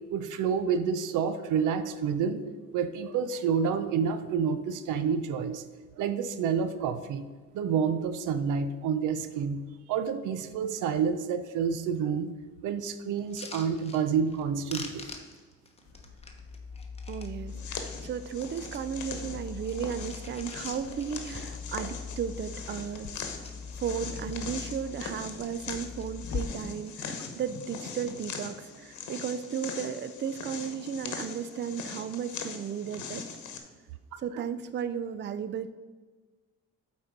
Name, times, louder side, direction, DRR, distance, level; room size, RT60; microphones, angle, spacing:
voice 1, 0.1-2.4 2.7-5.6 6.0-7.2 7.5-9.6 9.9-12.3 12.6-15.1 34.3-34.4, right 6 dB, 85° right, 11 dB, 0.6 m, -29 dB
sound 1, 13.2-14.4 14.7-17.3 17.8-18.9 19.3-21.8 22.1-22.2 22.4-22.7 23.0-25.0 25.4-26.1 26.6-27.1 27.4-28.0 28.8-29.1, left 3 dB, 20° left, 1.1 m, -48 dB
sound 2, 15.8-26.4, left 5 dB, 50° left, 0.8 m, -42 dB
voice 2, 17.1-23.2 23.8-33.2 34.2-35.7, right 8 dB, 40° right, 13 dB, 0.4 m, -35 dB
sound 3, 17.5-33.6, left 6 dB, 70° left, 1.1 m, -41 dB
7.8 x 4.3 x 5.1 m, 1.4 s
cardioid pair, 90°, 30 cm